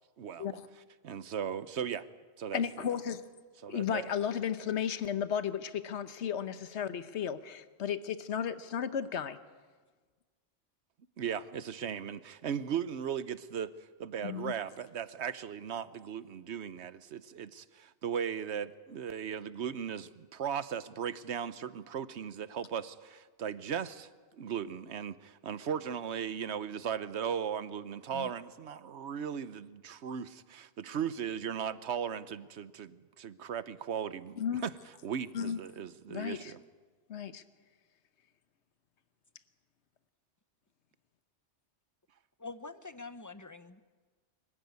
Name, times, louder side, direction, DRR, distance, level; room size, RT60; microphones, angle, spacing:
voice 1, 0.2-0.6 1.0-2.1 2.4-2.6 3.6-4.1 11.2-24.1 24.4-34.7 35.0-36.6, right 8 dB, 80° right, 15 dB, 1.1 m, -37 dB
voice 2, 2.5-3.2 3.7-9.4 14.2-14.5 28.1-28.3 34.4-34.6 35.3-35.6 36.1-36.5 37.1-37.4, left 8 dB, 80° left, 12 dB, 1.2 m, -34 dB
voice 3, 42.4-44.0, left 3 dB, 20° left, 12 dB, 0.7 m, -45 dB
24.5 x 15.0 x 9.4 m, 1.4 s
omnidirectional pair, 1.1 m